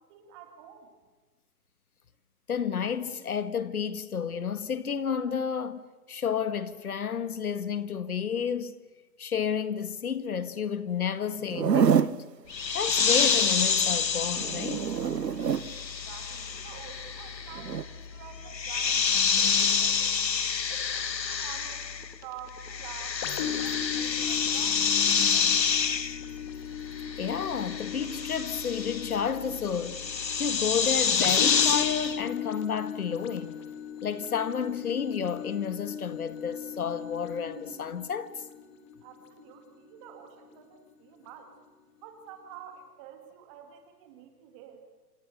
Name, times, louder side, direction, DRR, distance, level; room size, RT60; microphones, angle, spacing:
voice 1, 0.1-0.9 16.0-20.2 20.7-25.8 39.0-41.5 42.0-44.8, right 8 dB, 20° right, 2.5 m, -49 dB
voice 2, 2.5-5.8 6.1-8.7 9.2-12.2 12.7-14.9 27.2-30.1 30.4-33.6 34.0-38.3, left 7 dB, 60° left, 1.9 m, -31 dB
Zipper (clothing), 11.4-12.2 14.3-15.7 17.6-17.8, right 7 dB, 75° right, 1.2 m, -26 dB
sound 1, 12.5-22.2 22.5-32.2, left 6 dB, 90° left, 1.7 m, -28 dB
sound 2, 23.2-40.7 41.3-41.4, left 9 dB, 20° left, 1.7 m, -38 dB
28.5 x 28.0 x 6.7 m
hypercardioid pair, 160°, 49 cm